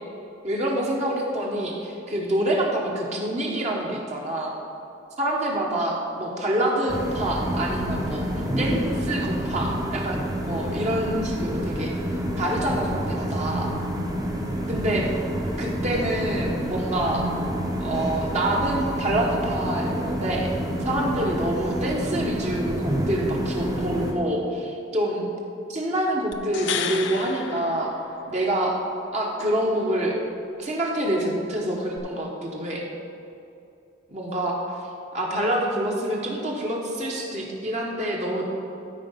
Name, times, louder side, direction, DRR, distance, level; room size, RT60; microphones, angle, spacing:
voice 1, 0.4-4.5 5.2-8.3 8.6-11.9 12.4-13.7 14.7-15.1 15.6-17.3 17.8-20.5 20.8-25.3 25.7-27.9 28.3-28.8 29.1-30.2 30.6-32.8 34.1-34.6 35.1-38.4, right 1 dB, 35° right, -2 dB, 1.0 m, -26 dB
sound 1, 6.9-24.1, equal, 20° right, 0.8 m, -28 dB
sound 2, 26.3-28.6 32.0-32.1, left 7 dB, 65° left, 0.5 m, -32 dB
13.0 x 4.6 x 5.6 m, 2.7 s
head